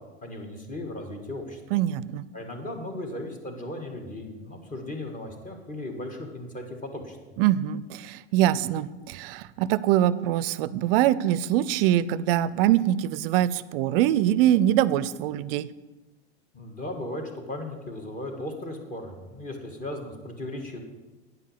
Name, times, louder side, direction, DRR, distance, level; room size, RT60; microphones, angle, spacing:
voice 1, 0.2-1.6 2.3-7.2 16.5-20.8, left 1 dB, 25° left, 3 dB, 1.7 m, -36 dB
voice 2, 1.7-2.2 7.4-15.7, right 12 dB, 55° right, 18 dB, 0.5 m, -23 dB
9.3 x 5.5 x 6.6 m, 1.2 s
hypercardioid pair, 105°, 34 cm